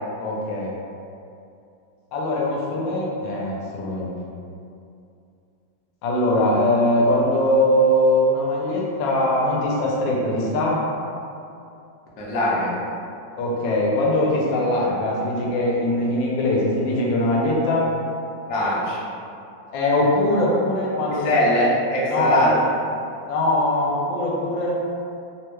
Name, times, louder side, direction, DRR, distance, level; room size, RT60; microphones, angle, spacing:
voice 1, 0.2-0.7 2.1-4.1 6.0-10.8 13.4-17.9 19.7-21.3 22.0-22.5 23.3-24.8, left 1 dB, 90° left, -4 dB, 1.3 m, -21 dB
voice 2, 12.2-12.8 18.5-19.0 21.2-22.6, left 1 dB, 65° left, -6 dB, 0.8 m, -21 dB
3.4 x 2.2 x 3.0 m, 2.6 s
omnidirectional pair, 2.0 m